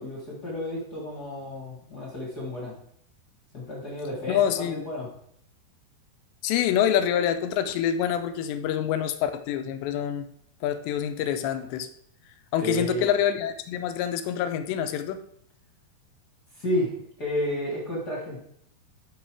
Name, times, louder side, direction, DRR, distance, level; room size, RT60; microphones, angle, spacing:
voice 1, 0.0-2.8 3.5-5.1 12.6-13.1 16.5-16.9 17.2-18.4, left 1 dB, 40° left, -3 dB, 1.4 m, -31 dB
voice 2, 4.3-4.8 6.4-10.3 10.6-11.9 12.5-15.2, left 9 dB, 85° left, 9 dB, 2.8 m, -26 dB
11.5 x 5.6 x 4.8 m, 0.68 s
omnidirectional pair, 5.2 m